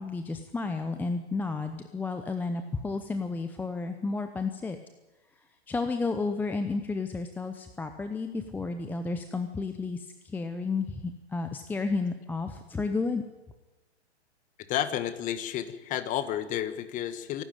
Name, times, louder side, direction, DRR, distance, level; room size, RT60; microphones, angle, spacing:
voice 1, 0.0-4.8 5.7-13.2, left 3 dB, 5° left, 7 dB, 0.7 m, -32 dB
voice 2, 14.7-17.4, left 11 dB, 25° left, 13 dB, 1.4 m, -31 dB
26.0 x 12.0 x 9.2 m, 1.1 s
hypercardioid pair, 140°, 34 cm